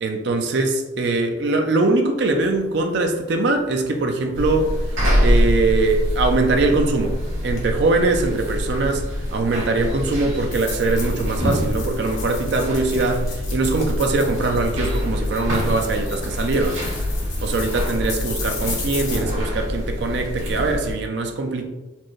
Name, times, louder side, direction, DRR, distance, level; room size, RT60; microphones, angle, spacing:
voice 1, 0.0-4.7 5.2-7.2 7.4-9.0 9.3-16.8 17.4-21.7, right 3 dB, 55° right, 4 dB, 0.4 m, -22 dB
sound 1, 2.2-19.3, left 4 dB, 85° left, 1.1 m, -38 dB
sound 2, 4.3-20.9, equal, 90° right, 1.5 m, -25 dB
4.3 x 2.5 x 3.1 m, 1.1 s
head